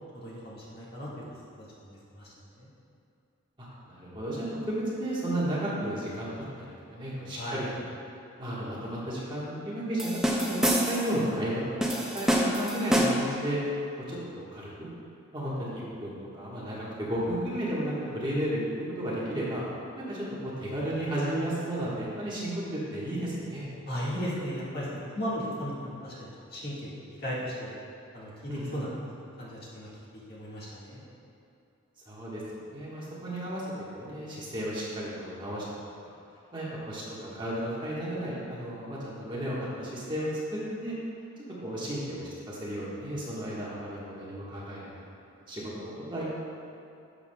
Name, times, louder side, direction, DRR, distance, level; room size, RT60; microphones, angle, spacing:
voice 1, 0.1-1.2 1.6-2.7 7.3-7.6 23.9-27.7 28.1-29.0 29.4-31.0, equal, 45° left, -7 dB, 1.7 m, -36 dB
voice 2, 3.6-4.5 4.9-6.3 6.6-7.8 8.4-13.6 14.1-14.7 15.3-18.6 19.0-19.6 20.0-23.7 28.5-28.8 32.1-32.4 32.7-33.6 33.9-35.6 36.0-36.1 36.5-40.3 40.8-40.9 41.6-44.9 45.5-46.4, right 1 dB, 20° right, -8 dB, 1.4 m, -33 dB
sound 1, 10.0-11.2 11.8-13.4, equal, 5° right, 0.5 m, -26 dB
11.5 x 6.9 x 2.3 m, 2.6 s
head